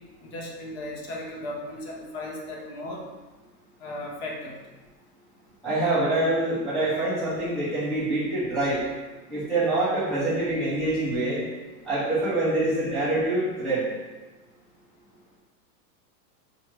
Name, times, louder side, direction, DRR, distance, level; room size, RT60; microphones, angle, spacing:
voice 1, 0.2-3.0 3.8-4.5, left 1 dB, 40° left, -2 dB, 0.7 m, -36 dB
voice 2, 5.6-8.8 9.3-11.4 11.8-14.0, right 2 dB, ahead, -14 dB, 0.3 m, -25 dB
4.6 x 2.4 x 2.9 m, 1.2 s
supercardioid pair, 140°, 48 cm